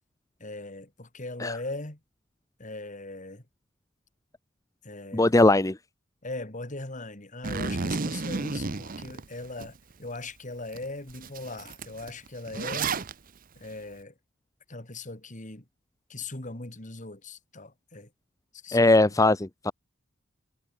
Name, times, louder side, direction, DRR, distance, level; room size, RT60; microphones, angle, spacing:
voice 1, 0.4-2.0 2.6-3.4 4.8-5.4 6.2-13.0 13.5-14.1 14.7-15.7 16.1-18.1 18.5-19.1, left 2 dB, 35° left, 2.8 m, -39 dB
voice 2, 5.1-5.8 18.7-19.7, left 2 dB, 15° left, 0.7 m, -20 dB
Zipper (clothing), 7.4-9.7 10.1-10.2 10.7-10.8 11.1-13.1, right 4 dB, 40° right, 0.8 m, -32 dB
head